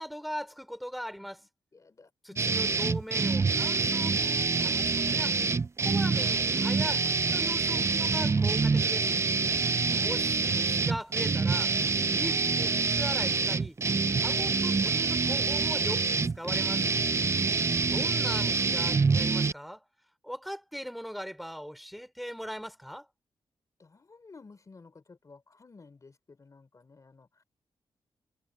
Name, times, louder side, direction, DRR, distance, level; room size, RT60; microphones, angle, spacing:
voice 1, 0.0-1.5 2.2-5.4 5.8-9.1 9.9-11.7 12.1-13.8 14.2-16.8 17.7-19.9 20.2-23.1, equal, ahead, 4.1 m, -40 dB
voice 2, 1.7-2.8 9.4-10.1 23.8-27.4, left 4 dB, 35° left, 3.2 m, -55 dB
sound 1, 2.4-19.5, right 4 dB, 30° right, 0.5 m, -26 dB
cardioid pair, 90°, 9 cm